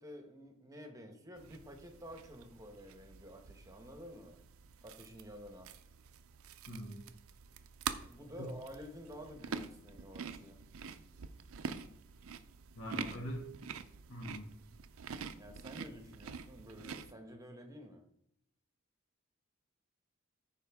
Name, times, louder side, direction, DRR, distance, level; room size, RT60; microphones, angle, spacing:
voice 1, 0.0-4.4 4.8-5.7 8.1-10.6 15.4-18.0, equal, 15° right, 5 dB, 1.0 m, -51 dB
sound 1, 1.4-17.1, right 6 dB, 80° right, 0.5 m, -46 dB
voice 2, 6.7-7.0 8.4-8.5 12.7-13.5 14.1-14.5, equal, 65° left, 0 dB, 2.0 m, -42 dB
14.0 x 5.1 x 3.5 m, 0.72 s
head